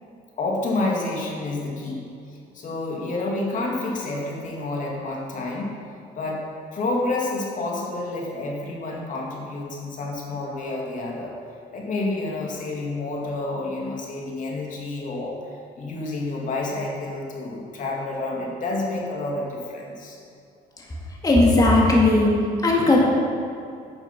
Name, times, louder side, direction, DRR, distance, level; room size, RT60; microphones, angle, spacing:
voice 1, 0.4-2.0 2.5-5.8 6.2-6.4 6.7-11.4 11.7-15.4 15.8-20.2, left 2 dB, 50° left, -2 dB, 2.2 m, -29 dB
voice 2, 21.2-23.0, left 2 dB, 20° left, -3 dB, 2.0 m, -17 dB
9.7 x 7.0 x 5.8 m, 2.5 s
cardioid pair, 110°, 17 cm